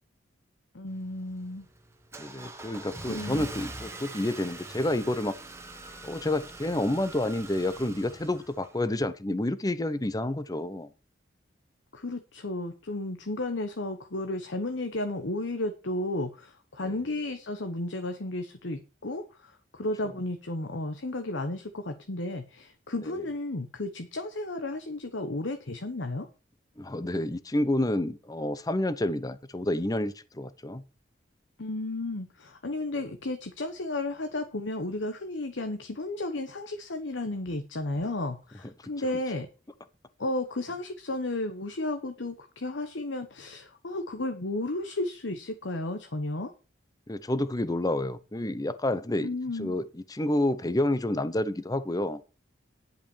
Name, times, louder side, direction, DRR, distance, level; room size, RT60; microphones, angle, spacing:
voice 1, 0.7-1.6 3.1-3.5 11.9-26.3 31.6-39.5 40.2-46.5 49.2-49.8, left 2 dB, 75° left, 1.1 m, -33 dB
Car / Engine starting, 0.9-9.0, right 2 dB, 15° right, 1.2 m, -43 dB
voice 2, 2.2-5.4 6.0-10.9 16.8-17.0 23.0-23.1 26.8-30.8 47.1-49.3 49.5-52.2, left 1 dB, 20° left, 0.7 m, -29 dB
10.5 x 5.8 x 7.2 m
head